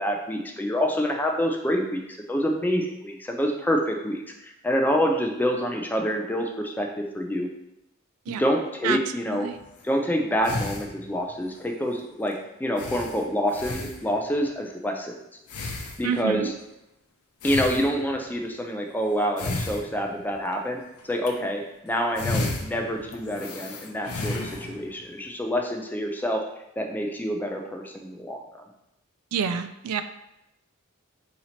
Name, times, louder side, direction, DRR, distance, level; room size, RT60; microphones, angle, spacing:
voice 1, 0.0-7.5 8.3-9.5 9.8-12.3 12.6-15.1 16.0-16.5 17.4-20.8 21.1-26.4 26.8-28.6, equal, 10° left, 2 dB, 0.3 m, -27 dB
sound 1, 9.5-9.8 10.4-11.4 11.9-12.0 12.3-12.4 12.8-14.4 15.5-16.4 17.4-18.4 19.2-20.5 21.0-21.3 21.9-25.0, left 2 dB, 85° left, 0.5 m, -33 dB
voice 2, 16.0-16.5 29.3-30.0, right 7 dB, 85° right, 14 dB, 0.3 m, -27 dB
2.8 x 2.8 x 4.2 m, 0.88 s
head